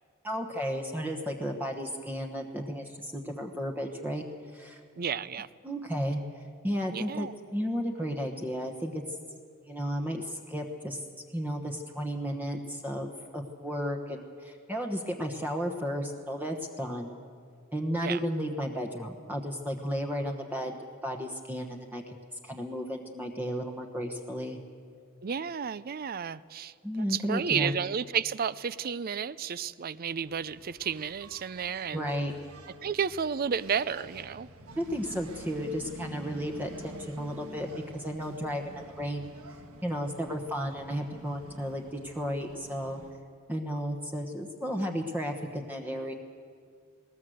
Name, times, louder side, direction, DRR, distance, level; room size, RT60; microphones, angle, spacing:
voice 1, 0.2-4.2 4.5-4.8 5.6-6.2 6.6-9.0 9.7-11.0 11.3-13.1 13.3-17.1 17.7-20.8 21.0-22.0 22.4-24.6 26.8-27.7 31.9-32.3 34.8-37.7 37.9-39.2 39.8-43.0 43.5-46.1, equal, 10° right, 2 dB, 1.1 m, -33 dB
voice 2, 5.0-5.5 6.9-7.3 18.0-18.2 25.2-32.0 32.8-34.5, right 7 dB, 45° right, 18 dB, 0.5 m, -32 dB
Engine, 30.2-43.2, right 2 dB, 90° right, 1.5 m, -49 dB
20.5 x 19.0 x 7.8 m, 2.2 s
head